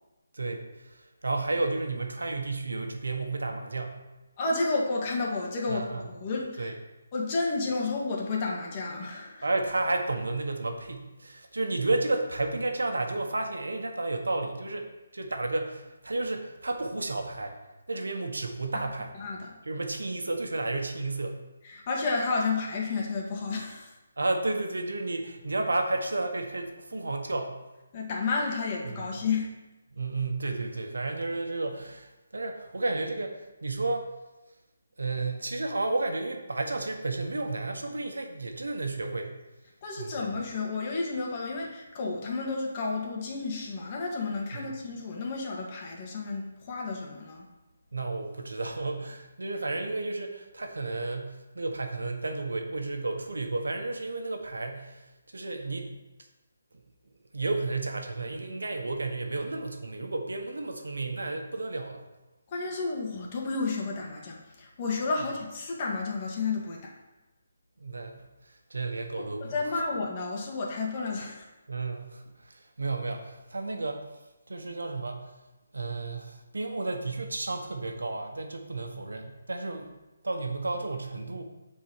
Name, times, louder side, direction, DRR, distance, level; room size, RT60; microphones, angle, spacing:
voice 1, 0.3-4.0 5.7-6.0 6.6-6.7 9.4-17.6 17.9-19.1 19.6-21.4 24.2-27.6 28.8-29.1 29.9-34.1 35.0-39.3 40.0-40.2 44.5-44.6 47.9-55.9 57.3-62.0 67.8-69.8 71.7-74.0 74.5-75.3 75.7-79.9 80.2-81.4, right 2 dB, 85° right, 4 dB, 1.4 m, -32 dB
voice 2, 4.4-6.7 7.1-9.5 18.7-18.8 19.2-19.5 21.6-23.9 27.9-29.5 39.8-47.5 62.5-66.9 69.4-71.4, left 3 dB, 30° left, -2 dB, 2.0 m, -31 dB
7.5 x 4.6 x 6.5 m, 1.0 s
figure-of-eight pair, 160°, 0 cm